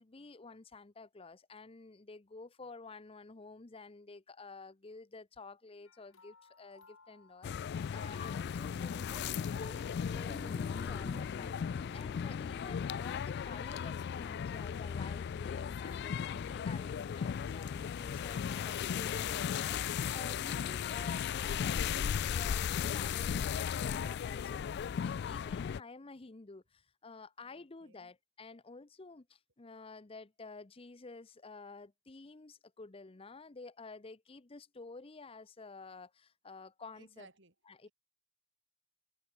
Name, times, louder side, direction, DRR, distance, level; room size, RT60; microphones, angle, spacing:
voice 1, 0.0-37.3 37.7-37.9, left 3 dB, 25° left, 0.7 m, -51 dB
sound 1, 5.8-8.3, left 4 dB, 75° left, 5.4 m, -63 dB
sound 2, 7.4-25.8, left 7 dB, 55° left, 0.3 m, -36 dB
sound 3, 10.1-15.9, equal, 5° left, 4.5 m, -55 dB
voice 2, 20.5-20.9 27.4-28.1 36.9-37.5 37.8-37.9, right 3 dB, 60° right, 6.2 m, -61 dB
head